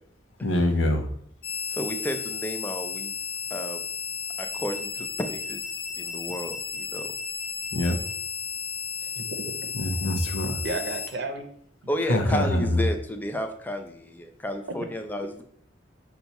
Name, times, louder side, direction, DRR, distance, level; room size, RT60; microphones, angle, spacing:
voice 1, 0.4-1.1 7.7-8.0 9.7-10.6 12.1-12.8, left 1 dB, 90° left, 5 dB, 0.6 m, -24 dB
sound 1, 1.4-11.1, left 5 dB, 50° left, 0.7 m, -33 dB
voice 2, 1.7-3.1 3.5-3.8 4.4-7.1 11.9-15.4, equal, 10° left, 6 dB, 0.4 m, -32 dB
voice 3, 9.1-9.7 10.3-11.5 14.7-14.8, right 2 dB, 60° right, 6 dB, 0.6 m, -34 dB
5.7 x 2.3 x 4.0 m, 0.66 s
head